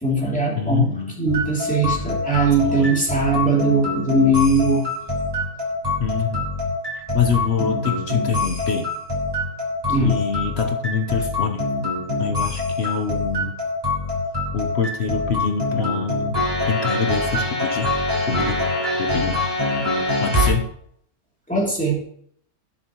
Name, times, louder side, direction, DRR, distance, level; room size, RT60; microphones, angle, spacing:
voice 1, 0.0-4.8 9.9-10.2 21.5-22.0, right 2 dB, 5° left, -3 dB, 2.8 m, -20 dB
voice 2, 0.6-1.2 2.6-3.0 6.0-6.5 6.9-8.9 9.9-11.7 12.2-13.5 14.5-16.4 16.7-17.9 18.2-18.6 18.9-19.4 20.2-20.7, left 6 dB, 55° left, 6 dB, 0.9 m, -25 dB
sound 1, 1.3-20.5, left 2 dB, 15° right, 3.8 m, -25 dB
17.5 x 7.3 x 3.0 m, 0.67 s
omnidirectional pair, 1.6 m